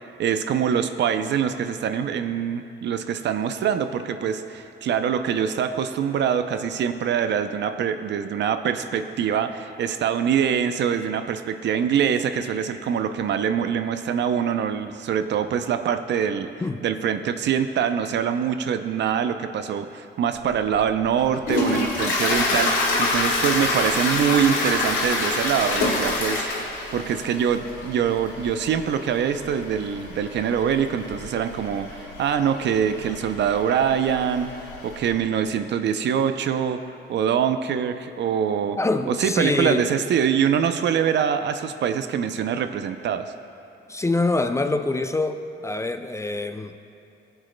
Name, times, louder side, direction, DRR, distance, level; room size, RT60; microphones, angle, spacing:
voice 1, 0.2-16.5 16.8-34.5 34.8-36.8 37.1-38.8 39.1-43.3, right 8 dB, 65° right, 9 dB, 0.5 m, -24 dB
Toilet flush, 20.4-35.2, left 2 dB, 85° left, 2.2 m, -27 dB
voice 2, 38.8-39.9 43.9-46.8, left 2 dB, 15° left, 7 dB, 0.4 m, -25 dB
17.5 x 8.0 x 2.2 m, 2.7 s
cardioid pair, 90°, 20 cm